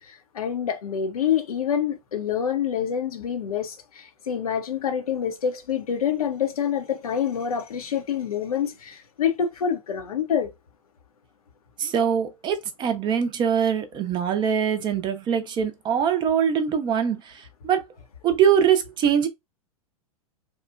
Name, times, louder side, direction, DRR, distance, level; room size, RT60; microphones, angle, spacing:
voice 1, 0.0-10.5, left 8 dB, 75° left, 0.6 m, -27 dB
voice 2, 11.8-17.9 18.2-19.3, right 8 dB, 25° right, 0.5 m, -23 dB
2.9 x 2.1 x 2.4 m
figure-of-eight pair, 100°, 19 cm